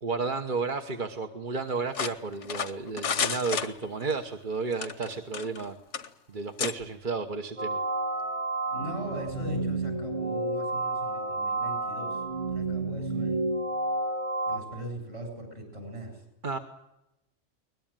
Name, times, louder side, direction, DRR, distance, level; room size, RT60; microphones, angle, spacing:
voice 1, 0.0-5.8 6.3-7.8 16.4-16.6, right 4 dB, 45° right, 5 dB, 1.3 m, -32 dB
sound 1, 1.9-4.2 4.7-5.7 5.9-6.1 6.6-6.8, left 7 dB, 75° left, 1.4 m, -31 dB
sound 2, 7.6-14.6, right 2 dB, 75° right, 3.6 m, -30 dB
voice 2, 8.7-13.4 14.5-16.2, equal, 60° right, 4 dB, 8.5 m, -40 dB
22.0 x 21.0 x 9.1 m, 0.91 s
omnidirectional pair, 1.2 m